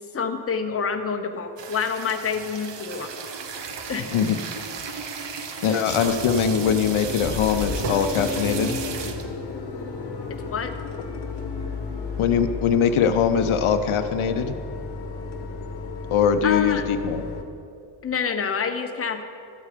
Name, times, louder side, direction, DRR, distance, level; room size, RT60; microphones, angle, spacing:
voice 1, 0.1-3.1 3.9-4.1 10.5-10.7 16.4-16.8 18.0-19.2, left 6 dB, 30° left, 5 dB, 0.8 m, -27 dB
sound 1, 1.6-9.4 9.9-10.0 10.2-10.5 10.9-12.2, right 5 dB, 60° right, 0.9 m, -34 dB
sound 2, 3.8-3.9 4.4-4.8 5.1-5.2 5.5-5.6 5.9-17.4, left 3 dB, 55° left, 1.1 m, -33 dB
voice 2, 5.6-8.8 12.2-14.6 16.1-17.2, left 7 dB, 85° left, 9 dB, 0.7 m, -22 dB
13.0 x 8.2 x 5.0 m, 2.6 s
wide cardioid pair, 135°, 48 cm